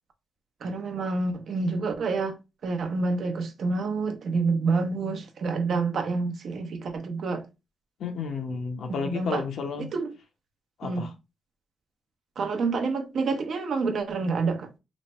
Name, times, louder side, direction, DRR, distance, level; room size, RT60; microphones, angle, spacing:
voice 1, 0.6-2.4 2.6-7.4 8.9-9.4 9.9-10.1 10.8-11.1 12.4-14.7, right 4 dB, 65° right, 0.8 m, -28 dB
voice 2, 8.0-9.9 10.8-11.1, left 5 dB, 75° left, 0.8 m, -32 dB
3.1 x 2.2 x 4.2 m
cardioid pair, 95°, 0 cm